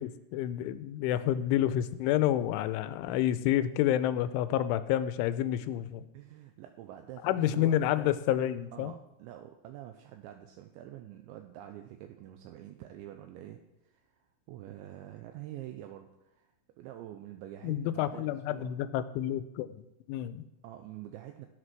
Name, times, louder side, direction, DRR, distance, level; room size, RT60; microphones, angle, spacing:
voice 1, 0.0-6.1 7.2-8.9 17.6-19.7 20.1-20.5, left 12 dB, 85° left, 13 dB, 3.1 m, -29 dB
voice 2, 6.1-7.8 8.7-18.8 20.6-21.5, right 12 dB, 80° right, 5 dB, 3.0 m, -47 dB
16.0 x 7.9 x 6.1 m, 0.92 s
omnidirectional pair, 5.5 m